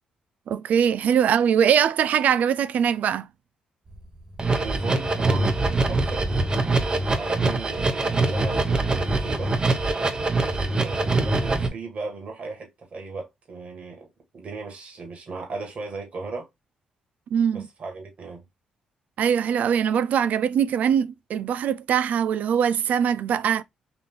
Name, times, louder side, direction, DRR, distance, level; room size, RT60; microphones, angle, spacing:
voice 1, 0.5-3.3 17.3-17.7 19.2-23.6, right 8 dB, 70° right, 0.4 m, -22 dB
sound 1, 3.9-4.0 4.3-11.7, right 2 dB, 30° right, 1.0 m, -23 dB
voice 2, 4.6-6.3 7.1-9.6 10.8-14.1 14.3-16.5 17.5-18.5, right 4 dB, 50° right, 2.0 m, -36 dB
3.9 x 2.8 x 3.8 m
supercardioid pair, 65°, 3 cm